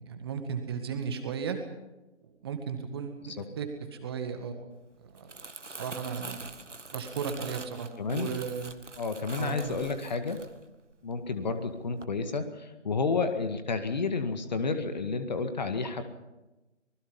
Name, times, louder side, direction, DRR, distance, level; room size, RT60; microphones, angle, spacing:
voice 1, 0.1-1.6 2.4-4.7 5.2-5.3 5.8-6.5 6.9-8.7 9.4-9.6, right 6 dB, 20° right, 6 dB, 1.9 m, -35 dB
Crumpling crinkling, 5.0-11.4 11.7-12.0, right 3 dB, 75° right, 1.9 m, -44 dB
voice 2, 8.0-8.4 9.0-10.4 11.0-16.0, left 4 dB, 35° left, 8 dB, 2.0 m, -31 dB
25.5 x 20.0 x 5.5 m, 1.1 s
figure-of-eight pair, 150°, 37 cm